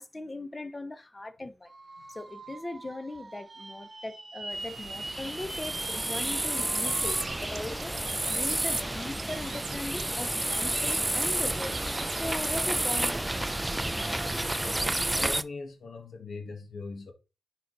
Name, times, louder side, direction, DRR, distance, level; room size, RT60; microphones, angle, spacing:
voice 1, 0.0-1.7 2.1-11.8 12.1-13.6, left 2 dB, 20° left, 0.8 m, -39 dB
sound 1, 1.7-7.3, right 3 dB, 30° right, 1.4 m, -42 dB
sound 2, 4.5-15.4, right 1 dB, 10° right, 0.5 m, -30 dB
Bird, 6.5-12.6, right 8 dB, 90° right, 0.6 m, -46 dB
voice 2, 14.4-17.1, left 3 dB, 65° left, 1.7 m, -41 dB
9.7 x 4.1 x 4.0 m
wide cardioid pair, 110°, 0 cm